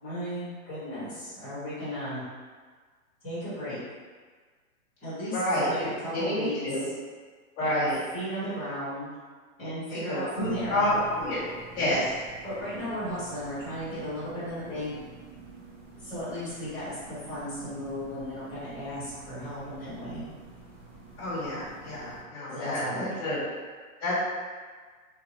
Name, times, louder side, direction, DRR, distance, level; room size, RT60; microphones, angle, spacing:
voice 1, 0.0-2.2 3.2-3.8 5.0-6.6 7.6-7.9 8.1-9.1 9.6-11.0 11.8-12.0 12.4-14.9 15.9-20.3 22.5-23.1, equal, 5° right, -24 dB, 0.4 m, -35 dB
voice 2, 5.3-5.7 6.1-6.9 7.6-8.0 9.9-11.4 11.7-12.1 21.2-23.4 24.0-24.3, left 1 dB, 20° left, -12 dB, 1.3 m, -29 dB
sound 1, 10.4-22.2, right 4 dB, 55° right, 1.2 m, -49 dB
3.6 x 2.9 x 2.6 m, 1.5 s
hypercardioid pair, 165°, 42 cm